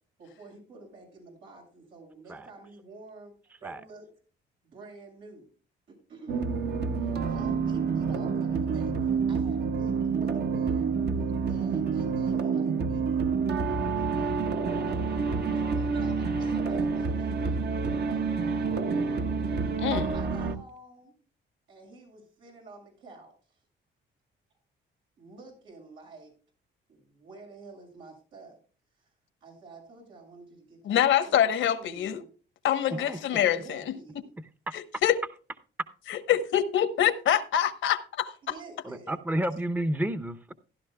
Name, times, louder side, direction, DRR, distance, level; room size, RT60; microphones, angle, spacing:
voice 1, 0.2-3.3 3.6-4.1 4.6-5.5 5.9-6.5 7.0-13.3 13.8-18.2 20.0-21.1 21.7-23.6 25.2-26.3 26.9-28.6 29.0-29.1 29.4-32.3 32.9-34.3 38.4-39.2, right 3 dB, 90° right, 7.0 m, -49 dB
sound 1, 6.3-20.6, right 5 dB, 55° right, 1.2 m, -28 dB
voice 2, 19.8-20.1 30.8-32.2 32.6-33.9 34.7-35.2 36.1-38.3, left 10 dB, 75° left, 1.1 m, -25 dB
voice 3, 38.9-40.5, right 1 dB, 10° right, 0.7 m, -30 dB
15.5 x 11.5 x 2.2 m
cardioid pair, 90°, 20 cm